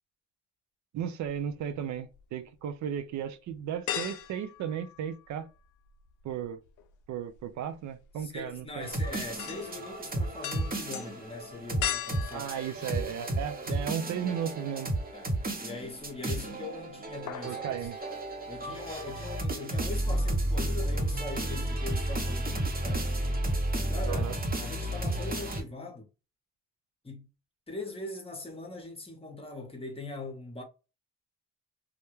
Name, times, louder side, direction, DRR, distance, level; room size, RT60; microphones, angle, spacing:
voice 1, 0.9-5.5 6.2-6.6 7.1-8.9 12.3-14.9 17.4-18.0 24.1-24.4, right 9 dB, 70° right, 0.5 m, -35 dB
sound 1, 1.2-2.2 2.7-2.8 3.9-5.6 5.9-13.8 14.2-14.3 15.7-16.3 16.6-16.8 17.1-17.6 17.9-18.0, left 10 dB, 80° left, 0.5 m, -39 dB
voice 2, 8.2-12.5 12.8-12.9 15.1-18.2 18.5-23.1 23.7-26.1 27.0-27.3 27.7-30.6, left 3 dB, 20° left, 0.8 m, -41 dB
sound 2, 8.8-25.6, right 1 dB, 30° right, 0.9 m, -32 dB
2.2 x 2.1 x 3.0 m
cardioid pair, 90°, 30 cm